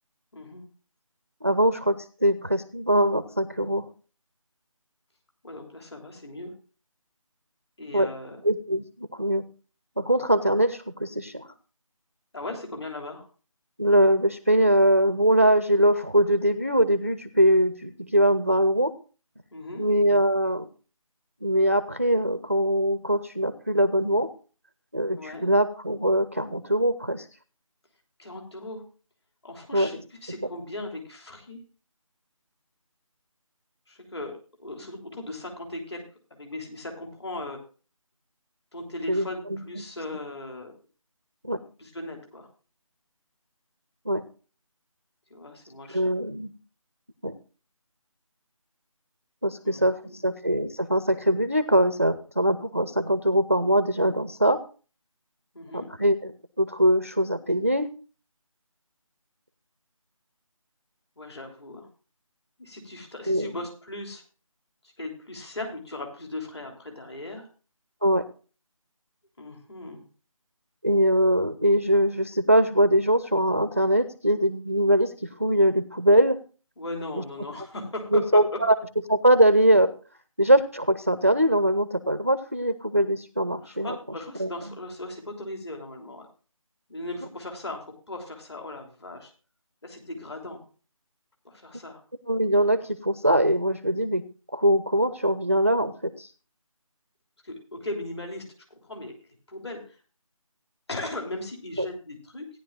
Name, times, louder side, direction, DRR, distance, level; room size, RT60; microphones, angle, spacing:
voice 1, 0.3-0.6 5.4-6.5 7.8-8.4 12.3-13.3 19.5-19.8 25.1-25.5 28.2-28.8 29.4-31.6 33.9-36.0 36.3-37.6 38.7-40.7 41.8-42.5 45.3-46.1 49.6-50.2 55.5-55.9 61.2-61.9 62.6-64.2 64.8-67.5 69.4-70.0 76.8-78.6 83.6-86.3 86.9-89.3 89.8-90.6 91.4-92.0 97.4-99.2 99.5-100.0 100.9-102.5, left 2 dB, 50° left, 2 dB, 3.3 m, -38 dB
voice 2, 1.4-1.9 2.2-3.9 7.9-8.1 8.4-9.4 10.0-11.5 13.8-18.9 19.8-20.7 21.4-24.3 24.9-27.3 29.7-30.0 39.1-39.8 41.4-41.6 44.1-44.2 45.9-46.5 47.2-47.3 49.4-54.6 55.7-56.3 56.6-57.9 63.3-63.5 68.0-68.2 70.8-76.4 78.1-78.7 79.1-79.9 80.4-83.9 84.4-84.5 92.3-94.2 94.5-96.3, equal, 25° right, 12 dB, 0.4 m, -22 dB
17.0 x 10.0 x 2.4 m, 0.36 s
figure-of-eight pair, 160°, 18 cm